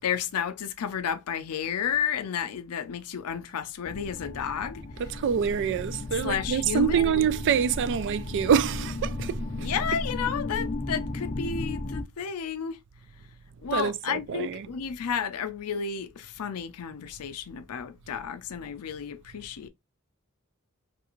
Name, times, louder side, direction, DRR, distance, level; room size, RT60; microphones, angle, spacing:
voice 1, 0.0-4.8 6.2-7.3 9.6-12.8 13.6-19.7, left 7 dB, 90° left, 0.5 m, -32 dB
sound 1, 3.8-12.0, left 2 dB, 30° left, 0.4 m, -34 dB
voice 2, 5.0-9.7 13.7-14.7, right 8 dB, 55° right, 0.3 m, -26 dB
3.3 x 2.4 x 2.9 m
head